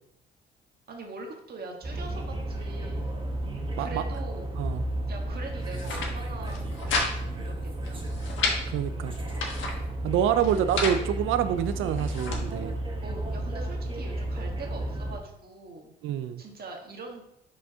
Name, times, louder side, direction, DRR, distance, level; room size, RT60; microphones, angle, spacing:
voice 1, 0.9-3.2 3.8-4.5 5.1-8.1 13.0-15.9 16.4-17.2, right 3 dB, 50° right, 1 dB, 1.5 m, -42 dB
sound 1, 1.8-15.2, right 1 dB, 25° right, 1.2 m, -33 dB
voice 2, 3.4-4.0 4.6-4.8 8.7-9.2 10.0-12.8 16.0-16.4, right 9 dB, 80° right, 11 dB, 0.4 m, -27 dB
sound 2, 5.6-6.1 6.5-7.1 7.4-7.5 7.9-8.6 9.1-9.8 10.4-11.0 11.7-12.4, left 3 dB, 75° left, 1.4 m, -31 dB
5.3 x 3.4 x 5.4 m, 0.79 s
cardioid pair, 90°, 20 cm